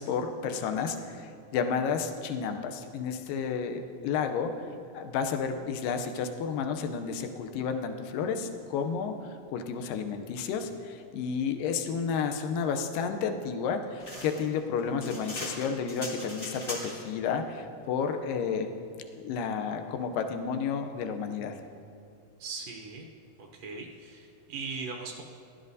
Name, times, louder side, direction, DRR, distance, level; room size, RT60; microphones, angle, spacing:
voice 1, 0.0-4.6 4.9-18.7 19.2-21.6, left 6 dB, 80° left, 6 dB, 2.3 m, -31 dB
sound 1, 14.0-17.1, left 1 dB, 25° left, 1.2 m, -40 dB
voice 2, 22.4-23.1 23.4-25.2, right 4 dB, 85° right, 1 dB, 1.4 m, -39 dB
16.0 x 12.5 x 2.7 m, 2.4 s
omnidirectional pair, 4.1 m